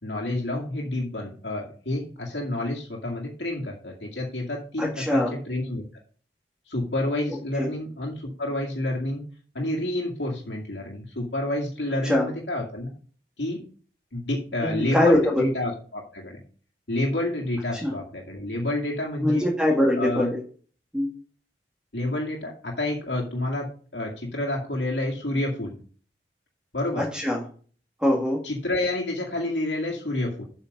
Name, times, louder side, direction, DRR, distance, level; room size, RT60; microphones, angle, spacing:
voice 1, 0.0-5.8 6.7-9.2 9.5-12.9 13.4-13.6 14.1-16.4 16.9-19.5 20.0-20.3 21.9-23.7 23.9-25.8 26.7-27.1 28.4-30.4, left 1 dB, 90° left, -1 dB, 2.2 m, -29 dB
voice 2, 4.8-5.3 7.6-7.7 12.0-12.3 14.6-15.2 17.8-17.9 19.2-20.4 20.9-21.1 27.0-27.4 28.0-28.4, left 1 dB, 5° right, -3 dB, 1.9 m, -22 dB
8.1 x 6.4 x 5.4 m, 0.43 s
head